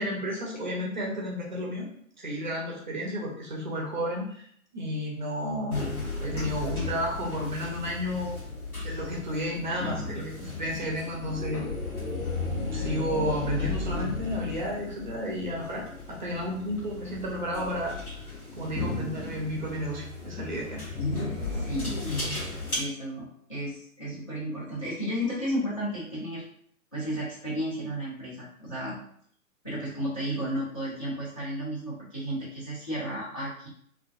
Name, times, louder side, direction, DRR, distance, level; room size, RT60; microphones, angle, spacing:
voice 1, 0.0-1.9 2.2-4.5 4.7-5.9 6.2-8.4 8.8-11.6 12.7-18.0 18.6-20.8, equal, 35° right, -3 dB, 0.5 m, -32 dB
sound 1, 5.7-22.7, left 3 dB, 90° left, 1.0 m, -34 dB
voice 2, 21.5-22.0 22.8-26.4 26.9-29.0 29.6-33.7, equal, 25° left, -9 dB, 0.4 m, -33 dB
2.3 x 2.2 x 2.4 m, 0.64 s
figure-of-eight pair, 125°, 43 cm